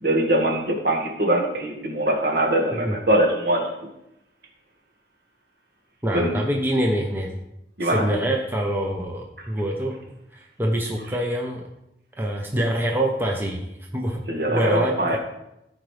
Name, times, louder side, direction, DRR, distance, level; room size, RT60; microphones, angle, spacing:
voice 1, 0.0-3.7 6.1-6.4 7.8-8.0 14.3-15.2, right 1 dB, 60° right, 0 dB, 1.8 m, -22 dB
voice 2, 6.0-7.4 7.8-10.0 10.3-11.7 12.2-13.7 13.9-14.2 14.5-15.2, right 1 dB, 10° right, 0 dB, 0.7 m, -25 dB
14.5 x 5.1 x 3.3 m, 0.86 s
head